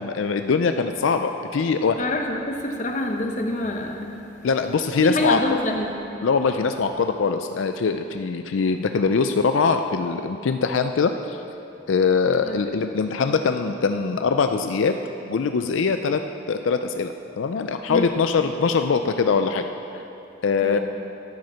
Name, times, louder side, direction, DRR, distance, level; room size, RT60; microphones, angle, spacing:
voice 1, 0.0-2.1 4.4-5.6 6.2-11.4 11.9-14.9 15.3-16.2 16.5-20.0 20.4-20.8, left 5 dB, 80° left, 7 dB, 0.4 m, -22 dB
voice 2, 2.0-4.2 5.0-6.0 12.4-12.6 17.9-18.2 20.6-20.8, left 1 dB, 40° left, 3 dB, 0.9 m, -27 dB
13.5 x 7.8 x 5.7 m, 2.9 s
head